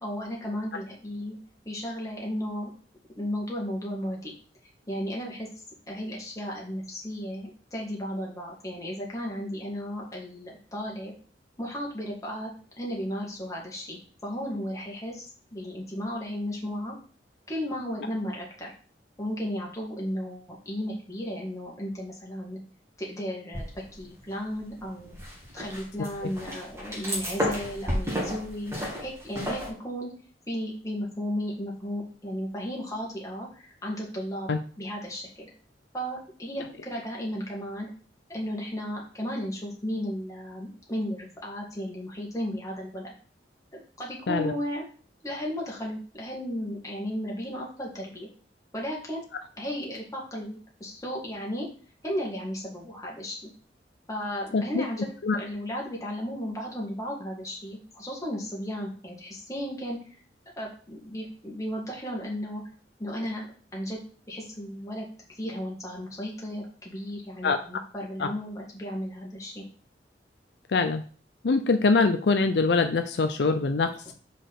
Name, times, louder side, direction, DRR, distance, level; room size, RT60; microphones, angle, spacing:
voice 1, 0.0-1.4 1.7-2.7 3.2-4.3 4.9-5.5 5.9-11.1 11.6-12.5 12.8-17.0 17.5-18.7 19.2-22.6 23.0-23.6 24.0-25.1 25.5-30.1 30.5-34.5 34.8-35.5 35.9-37.9 38.3-43.1 43.7-44.9 45.2-48.3 48.7-49.2 49.6-51.7 52.0-53.5 54.1-60.2 60.6-62.6 63.0-63.5 63.7-65.1 65.4-69.6, equal, 20° left, -3 dB, 2.1 m, -34 dB
sound 1, 23.5-24.2 24.6-29.7, equal, 15° right, 2.1 m, -32 dB
voice 2, 54.5-54.9 55.2-55.4 67.4-67.6 68.2-68.3 70.7-71.0 71.4-74.0, left 4 dB, 70° left, 8 dB, 0.5 m, -23 dB
5.1 x 4.2 x 5.9 m, 0.41 s
head